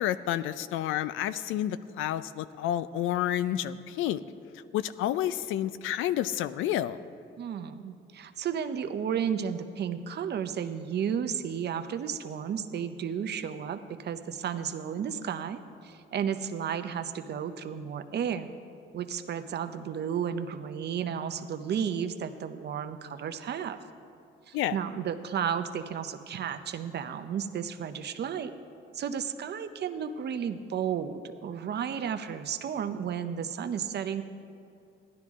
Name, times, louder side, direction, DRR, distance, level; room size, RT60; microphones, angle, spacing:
voice 1, 0.0-4.2 4.7-7.0 24.5-24.8, left 12 dB, 90° left, 15 dB, 0.4 m, -30 dB
voice 2, 7.4-18.5 18.9-23.8 24.5-28.5 28.9-34.2, right 8 dB, 55° right, 9 dB, 0.7 m, -33 dB
15.5 x 11.5 x 3.6 m, 2.5 s
cardioid pair, 90°, 20 cm